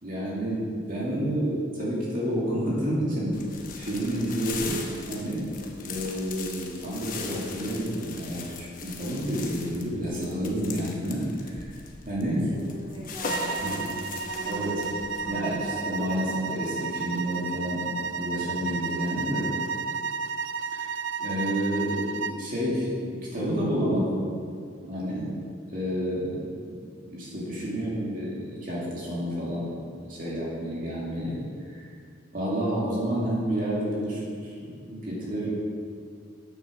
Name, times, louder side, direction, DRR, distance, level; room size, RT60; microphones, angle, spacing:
voice 1, 0.0-3.4 3.8-4.8 5.1-5.5 5.8-11.6 12.1-12.5 13.6-13.8 14.4-14.8 15.2-17.8 18.1-19.5 20.7-24.2 24.8-25.3 25.7-29.7 30.1-31.4 31.7-31.8 32.3-35.5, equal, 45° right, -6 dB, 2.3 m, -30 dB
sound 1, 3.3-15.6, left 4 dB, 45° left, 1.0 m, -40 dB
voice 2, 12.5-14.9 15.2-15.6 35.4-35.5, right 1 dB, 30° right, -7 dB, 2.3 m, -40 dB
sound 2, 13.3-22.4, right 5 dB, 75° right, 0.4 m, -32 dB
8.9 x 7.1 x 6.3 m, 2.2 s
head